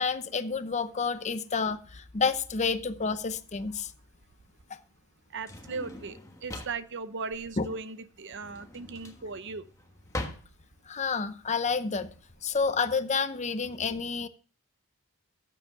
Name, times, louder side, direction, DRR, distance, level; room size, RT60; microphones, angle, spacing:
voice 1, 0.0-3.9 7.6-7.7 10.9-12.1 12.4-14.3, left 5 dB, 35° left, 0.7 m, -29 dB
Drawer open or close, 3.0-12.6, left 1 dB, 15° left, 1.4 m, -43 dB
voice 2, 5.3-9.6, right 4 dB, 55° right, 0.8 m, -38 dB
14.0 x 7.7 x 3.7 m
head